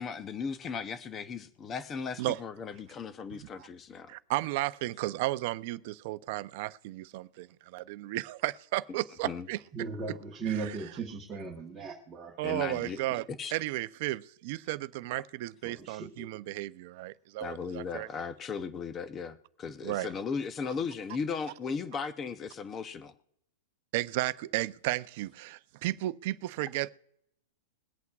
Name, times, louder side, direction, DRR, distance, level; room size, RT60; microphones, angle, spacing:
voice 1, 0.0-4.1 9.2-9.5 12.4-13.5 17.4-23.1, left 5 dB, 15° left, 0.6 m, -37 dB
voice 2, 4.1-9.6 12.4-13.2 13.5-18.1 19.8-20.1 23.9-26.9, right 17 dB, 45° right, 0.5 m, -34 dB
voice 3, 9.7-12.3 15.6-16.3, right 5 dB, 10° right, 1.2 m, -37 dB
22.0 x 8.3 x 2.3 m
supercardioid pair, 170°, 0 cm